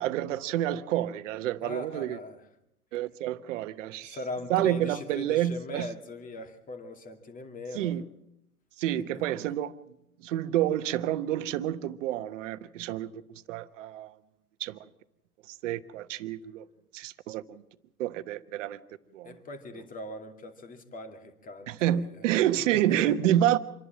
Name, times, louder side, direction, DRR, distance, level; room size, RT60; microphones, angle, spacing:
voice 1, 0.0-2.2 2.9-4.2 4.5-5.9 7.7-8.0 8.8-9.7 10.2-13.1 13.5-14.1 14.6-14.8 15.5-16.6 16.9-17.6 18.0-18.8 19.1-19.4 21.7-23.6, right 12 dB, 60° right, 1.3 m, -28 dB
voice 2, 1.6-2.5 4.0-8.0 9.1-9.2 19.2-22.4 22.7-23.2, left 2 dB, 20° left, 2.4 m, -40 dB
27.0 x 11.0 x 8.9 m
hypercardioid pair, 115°, 44 cm